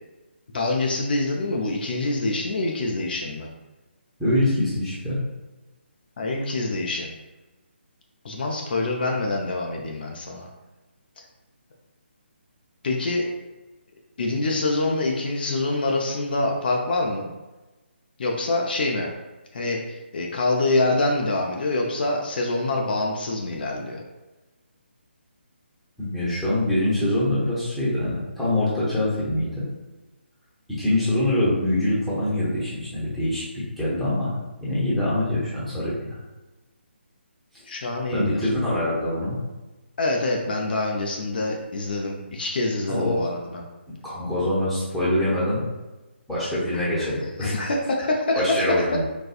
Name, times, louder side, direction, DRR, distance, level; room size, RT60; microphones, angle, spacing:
voice 1, 0.5-3.5 6.2-7.1 8.2-10.5 12.8-13.2 14.2-17.3 18.2-19.1 19.5-24.0 37.7-38.5 40.0-43.7 46.7-47.1 47.4-49.0, left 2 dB, 55° left, 0 dB, 0.5 m, -25 dB
voice 2, 4.2-5.2 26.0-29.6 30.8-34.3 34.6-36.0 38.1-39.4 42.9-43.3 44.0-45.6 46.3-47.7 48.3-49.0, left 1 dB, ahead, -11 dB, 0.9 m, -24 dB
4.2 x 2.3 x 2.4 m, 1.1 s
figure-of-eight pair, 155°, 6 cm